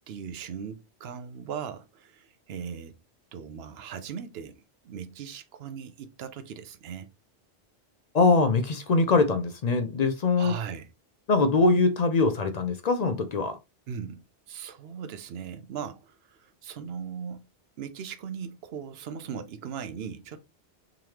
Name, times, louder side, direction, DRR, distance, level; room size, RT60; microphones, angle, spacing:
voice 1, 0.0-2.9 3.3-7.1 10.4-10.9 13.9-14.2 14.5-17.5 17.8-20.4, right 7 dB, 70° right, 0.8 m, -39 dB
voice 2, 8.1-10.5 11.3-13.6, left 3 dB, 55° left, 0.5 m, -23 dB
3.8 x 3.2 x 2.8 m
omnidirectional pair, 1.1 m